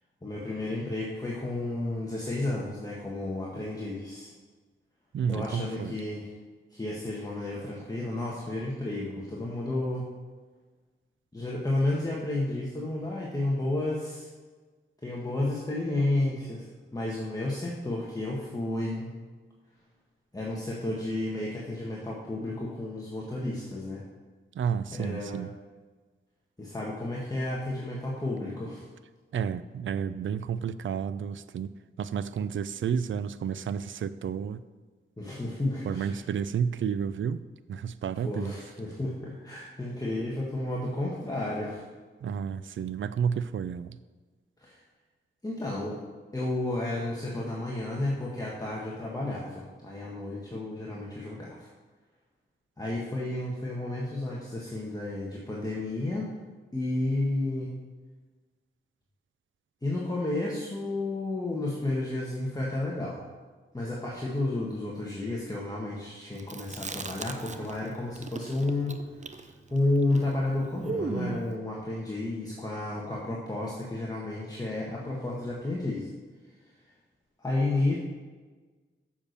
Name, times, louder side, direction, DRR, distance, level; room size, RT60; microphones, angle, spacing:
voice 1, 0.2-4.3 5.3-6.3 6.7-10.1 11.3-14.3 15.0-19.1 20.3-24.0 24.9-25.4 26.6-28.9 35.2-36.2 38.2-41.8 44.6-44.8 45.4-46.0 46.3-51.7 52.8-56.3 56.7-57.7 59.8-63.2 63.7-69.0 69.7-76.1 77.4-78.0, left 2 dB, 15° left, -4 dB, 1.5 m, -31 dB
voice 2, 5.1-6.0 24.5-25.5 29.3-31.7 32.0-34.6 35.8-37.4 37.7-38.6 42.2-44.0, right 7 dB, 70° right, 14 dB, 0.4 m, -31 dB
Chewing mastication, 66.4-67.9 68.1-71.5, right 4 dB, 35° right, 0.7 m, -36 dB
7.2 x 6.9 x 6.6 m, 1.4 s
wide cardioid pair, 90°, 21 cm